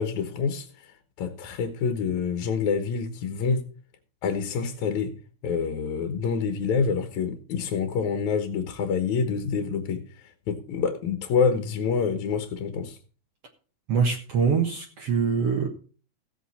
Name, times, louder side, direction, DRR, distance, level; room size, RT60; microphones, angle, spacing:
voice 1, 0.0-3.6 4.2-5.2 5.4-13.0, left 6 dB, 75° left, 2.5 m, -27 dB
voice 2, 13.9-15.7, right 6 dB, 60° right, 2.3 m, -24 dB
16.0 x 8.2 x 4.1 m
omnidirectional pair, 3.4 m